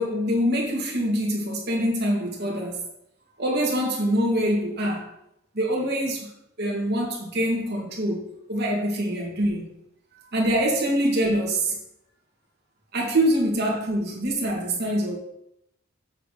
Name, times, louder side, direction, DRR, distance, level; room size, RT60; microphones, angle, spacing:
voice 1, 0.0-2.8 3.4-5.1 5.5-6.3 6.6-8.2 8.5-9.7 10.3-11.8 12.9-15.2, equal, 50° right, -1 dB, 2.2 m, -24 dB
7.6 x 4.1 x 6.7 m, 0.80 s
head